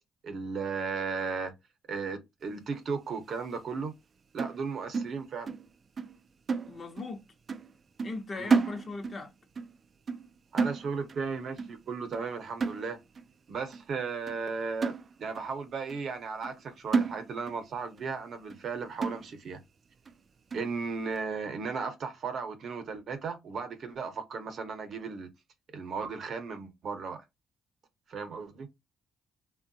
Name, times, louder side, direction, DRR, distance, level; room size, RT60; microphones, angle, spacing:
voice 1, 0.2-1.5 1.9-3.9 4.3-5.5 8.4-8.5 10.5-13.0 13.5-14.9 15.2-19.6 20.5-25.3 25.7-27.2 28.1-28.7, right 5 dB, 60° right, 0.8 m, -35 dB
sound 1, 4.4-5.7 6.0-6.2 6.5-7.2 7.5-7.7 8.0-9.3 9.6-9.8 10.1-10.3 10.6-11.3 11.6-11.8 12.1-12.3 12.6-13.2 13.7-13.8 14.3-14.4 14.8-15.5 15.9-16.0 16.4-16.6 16.9-17.7 18.0-18.1 18.5-18.6 19.0-19.6 20.1-20.2 20.5-20.7, right 4 dB, 45° right, 0.3 m, -31 dB
voice 2, 6.7-7.2 8.0-9.3, left 3 dB, 40° left, 0.7 m, -38 dB
3.5 x 2.2 x 2.6 m
cardioid pair, 90°, 0 cm